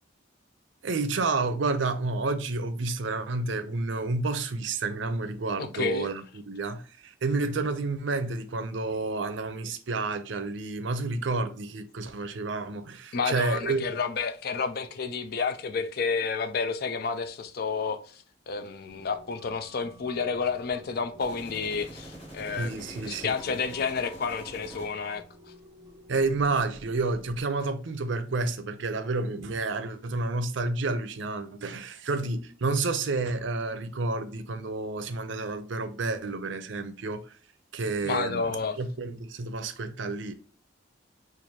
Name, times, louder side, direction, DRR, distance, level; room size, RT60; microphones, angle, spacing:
voice 1, 0.8-13.9 22.6-23.6 26.1-37.4 37.7-40.4, right 3 dB, 75° right, 0.6 m, -30 dB
voice 2, 5.6-6.1 13.1-25.2 38.0-38.8, left 5 dB, 55° left, 0.5 m, -30 dB
sound 1, 18.9-27.4, equal, 10° right, 0.5 m, -51 dB
sound 2, 21.2-25.2, right 1 dB, 30° left, 2.0 m, -46 dB
4.5 x 2.5 x 2.8 m
head